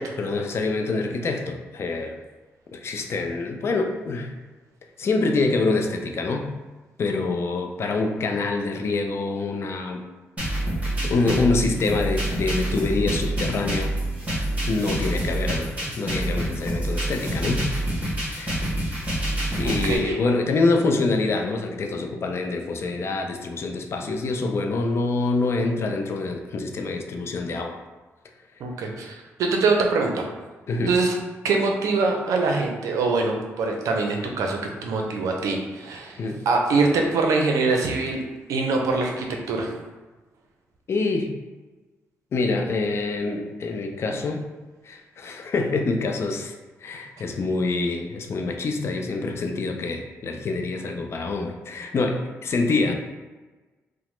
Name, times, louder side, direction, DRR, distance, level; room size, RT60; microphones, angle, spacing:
voice 1, 0.2-2.2 2.7-4.3 5.0-6.5 7.0-10.0 11.0-14.0 14.6-17.7 18.3-18.6 19.6-27.8 30.7-31.0 36.2-36.4 40.9-41.3 42.3-44.4 44.8-46.5 46.8-52.9, left 3 dB, 55° left, 4 dB, 0.4 m, -26 dB
sound 1, 10.4-20.0, right 1 dB, 25° right, 1.1 m, -27 dB
voice 2, 19.6-20.2 28.6-29.1 29.4-30.2 30.9-31.1 31.4-36.2 36.5-38.2 38.5-39.7, right 3 dB, 85° right, 2 dB, 0.5 m, -23 dB
2.9 x 2.0 x 3.0 m, 1.2 s
cardioid pair, 85°, 5 cm